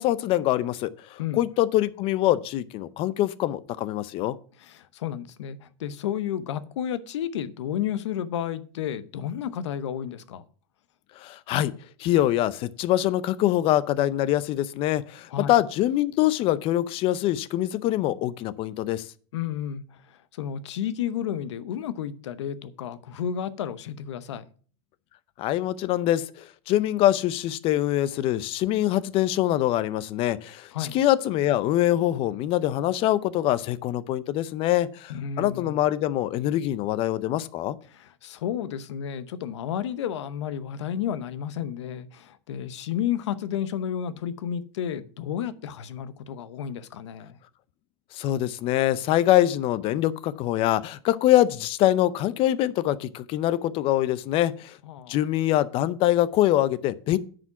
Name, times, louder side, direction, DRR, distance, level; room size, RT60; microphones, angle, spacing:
voice 1, 0.0-4.4 11.2-11.7 12.0-19.1 25.4-37.8 48.1-54.8 55.1-57.2, left 13 dB, 40° left, 0.6 m, -24 dB
voice 2, 4.6-10.5 15.3-15.6 19.3-24.5 30.7-31.0 35.1-35.8 37.9-47.4 54.8-55.2, left 9 dB, 85° left, 0.8 m, -32 dB
9.6 x 5.0 x 5.8 m
supercardioid pair, 135°, 14 cm